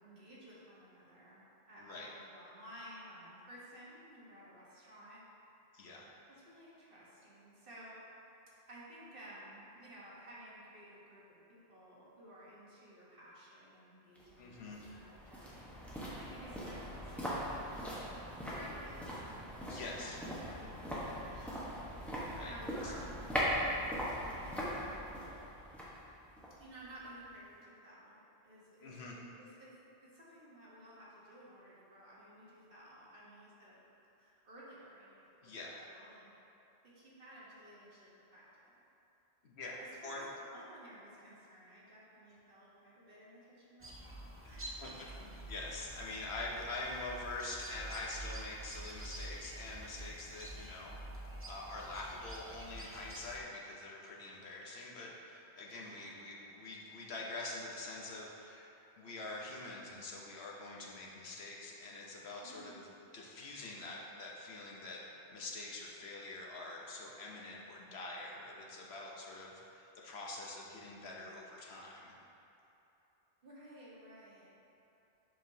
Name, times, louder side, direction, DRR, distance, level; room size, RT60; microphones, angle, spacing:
voice 1, 0.0-5.2 6.3-8.0 8.7-11.2 11.5-15.5 16.1-17.8 18.4-19.6 20.0-21.8 22.4-25.4 26.6-28.2 28.4-29.0 29.4-29.7 30.0-33.8 34.2-36.3 36.8-38.7 39.8-40.2 40.5-45.2 46.0-46.2 55.7-56.2 62.4-63.0 73.4-74.5, right 1 dB, 55° right, -8 dB, 1.5 m, -55 dB
voice 2, 1.8-2.1 5.7-6.0 14.4-14.9 19.7-20.2 22.2-22.5 22.8-22.9 28.8-29.2 35.4-35.8 39.4-40.3 44.8-44.9 45.2-51.0 51.5-62.8 63.1-65.0 65.3-72.1, left 2 dB, 70° left, -3 dB, 1.1 m, -45 dB
sound 1, 14.2-27.3 27.6-27.7, equal, ahead, 1.0 m, -40 dB
sound 2, 43.8-53.4, right 1 dB, 20° right, 0.4 m, -48 dB
7.5 x 5.5 x 2.8 m, 2.9 s
omnidirectional pair, 1.1 m